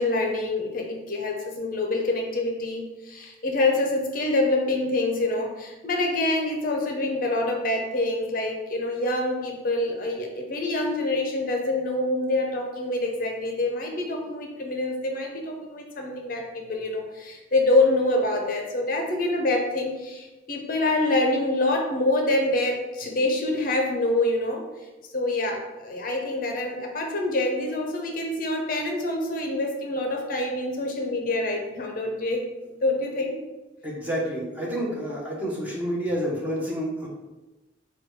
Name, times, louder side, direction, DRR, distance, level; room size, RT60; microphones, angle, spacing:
voice 1, 0.0-24.7 25.1-32.4 32.8-33.4, left 2 dB, 45° left, 1 dB, 0.6 m, -26 dB
voice 2, 33.8-37.1, equal, 10° right, -4 dB, 0.8 m, -29 dB
4.7 x 2.3 x 4.5 m, 1.1 s
head